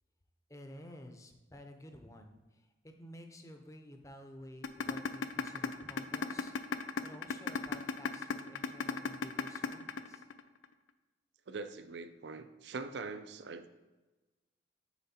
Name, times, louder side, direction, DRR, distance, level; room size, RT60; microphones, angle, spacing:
voice 1, 0.5-6.5 7.0-10.2, left 1 dB, 15° left, 5 dB, 0.5 m, -52 dB
sound 1, 4.6-10.6, left 5 dB, 85° left, 0.4 m, -34 dB
voice 2, 11.5-13.7, right 4 dB, 65° right, 10 dB, 0.4 m, -43 dB
7.2 x 4.5 x 4.2 m, 1.2 s
head